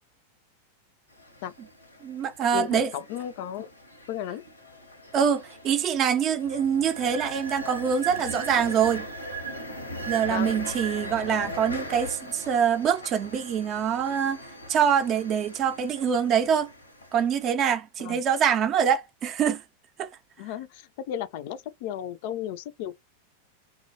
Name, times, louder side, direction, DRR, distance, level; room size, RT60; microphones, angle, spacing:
sound 1, 1.1-17.4, right 1 dB, 85° left, 0.7 m, -39 dB
voice 1, 2.0-2.9 5.1-9.1 10.1-14.4 14.7-16.7 17.1-19.6 20.0-20.1, right 7 dB, 30° right, 0.5 m, -24 dB
voice 2, 2.5-3.7 4.1-4.4 10.3-10.5 18.0-18.2 20.4-23.0, left 10 dB, 50° left, 0.3 m, -34 dB
2.1 x 2.1 x 2.7 m
figure-of-eight pair, 90°, 0 cm